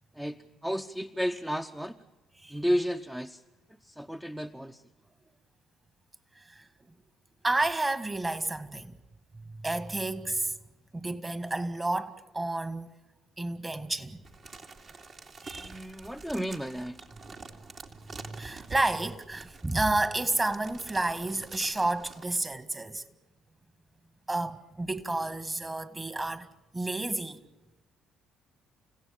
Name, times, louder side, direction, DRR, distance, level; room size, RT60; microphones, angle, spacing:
voice 1, 0.2-2.0 2.5-3.4 3.9-4.8 15.6-17.0, equal, 5° right, 0.9 m, -32 dB
voice 2, 6.4-6.7 7.4-9.0 9.3-10.6 10.9-12.9 13.4-14.2 15.4-15.7 18.2-23.0 24.3-26.5 26.7-27.4, right 2 dB, 20° right, 1.9 m, -31 dB
sound 1, 14.3-22.2, right 4 dB, 50° right, 2.7 m, -47 dB
30.0 x 16.5 x 8.7 m
hypercardioid pair, 55°, 0 cm